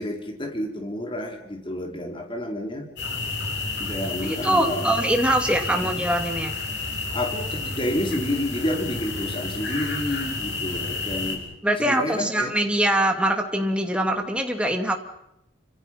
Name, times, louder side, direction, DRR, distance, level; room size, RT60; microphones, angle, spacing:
voice 1, 0.0-2.9 3.8-4.9 5.7-5.9 7.1-11.5 11.8-12.5, left 1 dB, 25° left, 2 dB, 4.0 m, -29 dB
sound 1, 3.0-11.4, left 3 dB, 60° left, 7.5 m, -30 dB
voice 2, 4.2-6.6 11.6-14.9, right 1 dB, 5° right, 4 dB, 2.5 m, -23 dB
29.0 x 26.5 x 5.8 m, 0.82 s
head